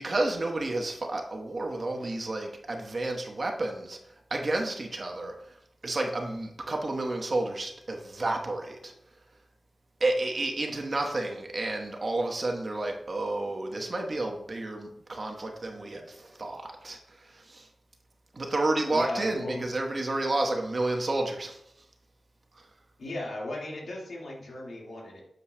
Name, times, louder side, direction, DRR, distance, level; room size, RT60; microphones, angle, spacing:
voice 1, 0.0-4.0 4.3-5.3 5.8-8.9 10.0-17.7 18.3-21.6 22.6-22.7, right 2 dB, 50° right, 2 dB, 1.1 m, -31 dB
voice 2, 18.9-19.7 23.0-25.2, left 1 dB, 80° left, -2 dB, 1.8 m, -36 dB
8.4 x 6.5 x 2.2 m, 0.75 s
wide cardioid pair, 75°, 0 cm